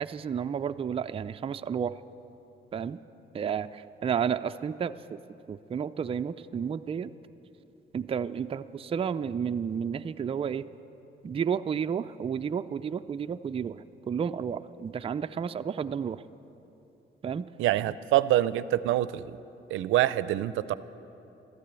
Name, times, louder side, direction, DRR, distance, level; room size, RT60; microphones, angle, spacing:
voice 1, 0.0-2.0 2.7-3.0 3.3-5.2 5.5-7.1 7.9-10.6 11.2-16.2 17.2-17.5, right 7 dB, 30° right, 10 dB, 0.4 m, -31 dB
voice 2, 17.6-19.4 19.7-20.7, right 14 dB, 85° right, 16 dB, 0.5 m, -25 dB
13.5 x 12.0 x 8.2 m, 2.9 s
cardioid pair, 90°, 20 cm